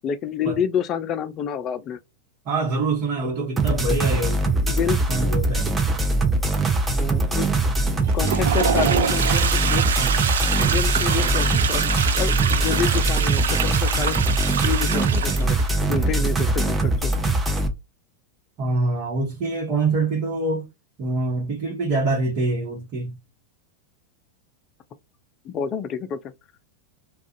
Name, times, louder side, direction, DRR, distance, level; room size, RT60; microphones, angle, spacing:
voice 1, 0.0-2.0 4.6-5.0 7.0-7.5 8.1-10.1 10.6-11.8 12.1-14.2 14.6-15.6 15.9-17.1 25.4-26.2, left 7 dB, 35° left, 0.4 m, -28 dB
voice 2, 2.4-4.5 5.1-5.7 18.6-20.7 21.0-23.2, right 3 dB, 45° right, 1.1 m, -25 dB
sound 1, 3.6-17.7, right 2 dB, 15° right, 0.6 m, -22 dB
Toilet flush, 8.0-15.7, right 7 dB, 75° right, 0.3 m, -25 dB
2.4 x 2.3 x 2.5 m
hypercardioid pair, 95°, 0 cm